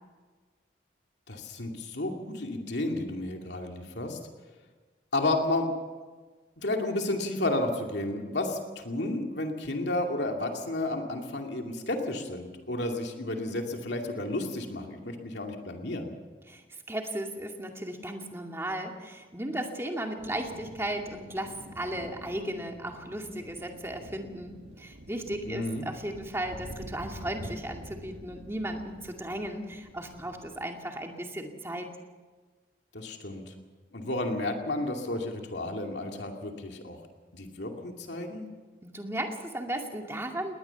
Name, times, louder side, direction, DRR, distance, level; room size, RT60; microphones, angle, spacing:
voice 1, 1.3-4.2 5.1-5.7 6.6-16.1 25.5-25.9 32.9-33.5 33.9-37.0 37.3-38.4, left 2 dB, 70° left, 2 dB, 2.5 m, -32 dB
voice 2, 16.9-31.9 38.8-40.5, right 1 dB, 15° right, 2 dB, 2.3 m, -35 dB
sound 1, 20.2-30.7, right 1 dB, 70° right, 1.9 m, -47 dB
20.0 x 19.5 x 7.1 m, 1.4 s
head